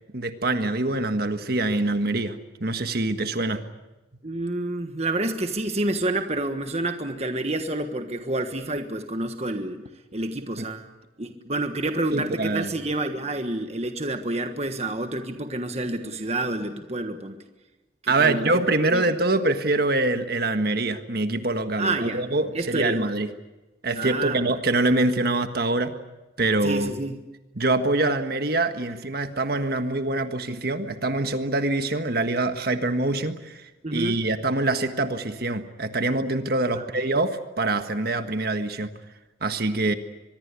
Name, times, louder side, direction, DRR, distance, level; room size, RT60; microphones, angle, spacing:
voice 1, 0.1-3.7 12.1-12.7 18.1-23.3 23.8-25.9 26.4-26.9 27.6-38.9 39.4-39.9, right 2 dB, 55° right, 8 dB, 1.6 m, -24 dB
voice 2, 4.2-9.8 10.1-10.9 11.2-17.4 18.0-18.6 18.9-19.0 21.8-22.2 22.5-23.0 24.0-24.5 26.6-27.2 33.8-34.2 36.7-37.1, right 2 dB, 35° right, 7 dB, 1.4 m, -28 dB
24.0 x 22.0 x 8.4 m, 1.1 s
head